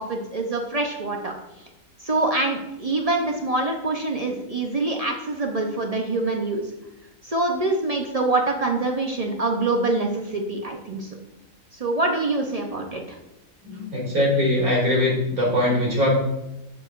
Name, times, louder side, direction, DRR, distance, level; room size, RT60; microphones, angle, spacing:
voice 1, 0.0-1.3 2.0-6.6 7.2-11.1 11.8-13.2, right 2 dB, 45° right, 2 dB, 0.5 m, -25 dB
voice 2, 13.6-16.1, left 1 dB, 85° right, -4 dB, 2.7 m, -21 dB
6.9 x 6.5 x 2.4 m, 0.94 s
omnidirectional pair, 1.5 m